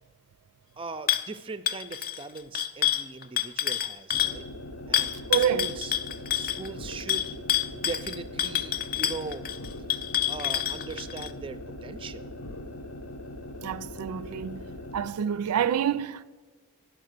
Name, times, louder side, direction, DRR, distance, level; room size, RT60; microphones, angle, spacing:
voice 1, 0.8-4.5 4.9-5.9 6.3-9.5 10.3-12.3, right 4 dB, 25° right, 0.4 m, -40 dB
sound 1, 1.1-1.3 1.7-4.4 4.9-11.3, left 11 dB, 40° left, 0.5 m, -28 dB
sound 2, 4.1-15.2, left 1 dB, 70° left, 0.8 m, -41 dB
voice 2, 5.3-5.7 13.6-14.6 14.9-16.2, right 9 dB, 90° right, 0.4 m, -27 dB
10.5 x 6.2 x 6.6 m
head